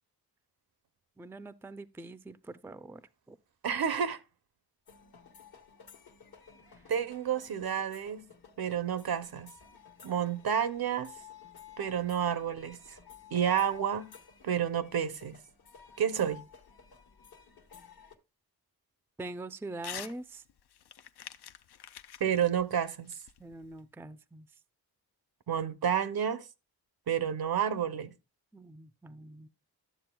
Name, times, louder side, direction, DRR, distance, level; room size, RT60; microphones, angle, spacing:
voice 1, 1.2-3.0 3.3-3.4 19.2-20.4 23.4-24.5 28.5-29.5, right 2 dB, 5° right, 0.4 m, -43 dB
voice 2, 3.6-4.2 6.9-8.3 8.6-9.5 10.0-11.2 11.8-13.0 13.3-14.1 14.4-15.4 16.0-16.4 22.2-23.1 25.5-26.5 27.1-28.1, right 8 dB, 70° right, 0.7 m, -30 dB
sound 1, 4.9-18.2, left 7 dB, 70° left, 1.1 m, -54 dB
Crumpling crinkling / Tearing, 19.8-20.2 20.5-23.8, left 9 dB, 90° left, 0.5 m, -46 dB
12.0 x 7.4 x 2.2 m
wide cardioid pair, 80°, 38 cm